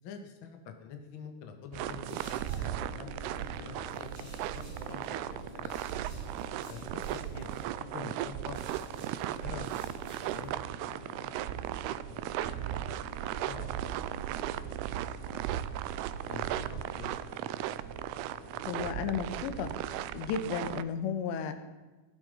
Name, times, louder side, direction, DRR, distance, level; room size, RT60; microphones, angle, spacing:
voice 1, 0.0-2.2 2.5-5.8 6.6-7.6 7.9-8.6 9.2-10.0 10.3-11.7 12.0-12.8 13.2-13.7 14.3-14.8 15.3-15.6 16.2-17.8, left 6 dB, 60° left, 4 dB, 1.3 m, -47 dB
sound 1, 1.7-20.8, right 13 dB, 80° right, 2.3 m, -36 dB
sound 2, 1.9-10.5, left 1 dB, 30° right, 6.9 m, -54 dB
sound 3, 2.0-20.1, left 3 dB, 40° left, 2.3 m, -50 dB
voice 2, 18.7-19.7 20.1-21.5, left 7 dB, 80° left, 8 dB, 3.4 m, -33 dB
18.0 x 12.0 x 5.5 m, 1.2 s
omnidirectional pair, 5.1 m